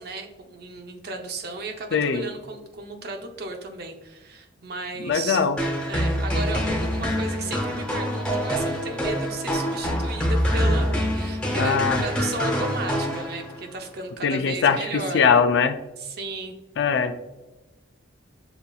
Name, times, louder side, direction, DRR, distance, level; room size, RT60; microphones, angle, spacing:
voice 1, 0.0-5.4 5.8-15.3 16.0-16.6, right 2 dB, 55° right, 4 dB, 0.6 m, -34 dB
voice 2, 1.9-2.2 5.0-5.6 11.6-12.0 14.2-15.8 16.8-17.2, left 6 dB, 60° left, 9 dB, 0.4 m, -21 dB
sound 1, 5.6-13.7, equal, 5° left, 0.8 m, -25 dB
6.8 x 2.5 x 2.3 m, 1.0 s
head